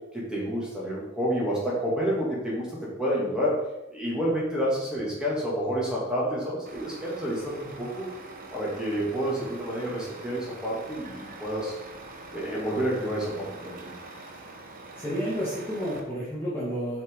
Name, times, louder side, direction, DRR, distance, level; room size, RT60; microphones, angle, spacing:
voice 1, 0.1-3.6 3.9-8.1 8.5-11.7 12.3-13.9, equal, 5° right, -7 dB, 2.6 m, -29 dB
Truck, 6.6-16.0, right 2 dB, 45° right, 1.0 m, -44 dB
voice 2, 14.9-17.0, equal, 15° left, -10 dB, 2.0 m, -30 dB
6.2 x 6.2 x 3.9 m, 0.91 s
head